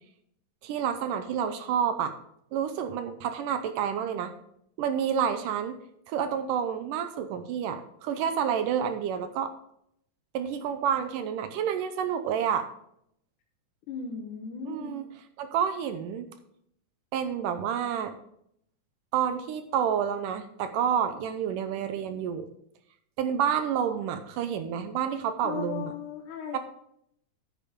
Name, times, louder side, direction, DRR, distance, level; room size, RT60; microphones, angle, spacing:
voice 1, 0.6-2.1 2.5-4.3 4.8-5.8 6.1-9.5 10.3-12.7 14.7-15.0 15.4-16.3 17.1-18.2 19.1-22.5 23.2-25.9 26.5-26.6, right 8 dB, 75° right, 9 dB, 2.1 m, -29 dB
voice 2, 13.9-15.0 25.4-26.6, left 6 dB, 65° left, 0 dB, 2.4 m, -37 dB
10.0 x 8.8 x 3.6 m, 0.72 s
omnidirectional pair, 4.1 m